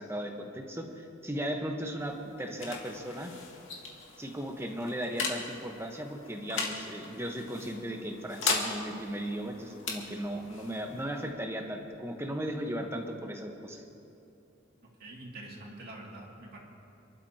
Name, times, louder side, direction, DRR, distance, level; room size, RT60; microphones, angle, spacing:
voice 1, 0.0-3.3 4.2-13.8, equal, 15° right, 3 dB, 1.2 m, -36 dB
sound 1, 1.8-13.2, left 4 dB, 75° left, 2.1 m, -39 dB
voice 2, 15.0-16.6, right 2 dB, 50° right, -3 dB, 2.5 m, -45 dB
28.0 x 12.0 x 2.9 m, 2.7 s
head